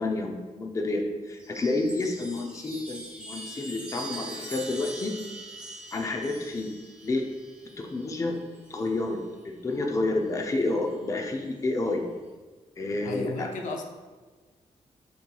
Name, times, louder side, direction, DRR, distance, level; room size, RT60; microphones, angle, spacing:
voice 1, 0.0-5.1 5.9-6.7 7.0-7.3 7.8-8.4 8.7-12.1 12.8-13.5, left 2 dB, 25° left, 2 dB, 0.4 m, -29 dB
Chime, 1.3-9.1 10.3-11.0, right 1 dB, 10° right, 0.8 m, -43 dB
voice 2, 13.0-13.8, left 3 dB, 85° left, 3 dB, 0.5 m, -33 dB
6.6 x 3.0 x 2.2 m, 1.4 s
wide cardioid pair, 140°, 13 cm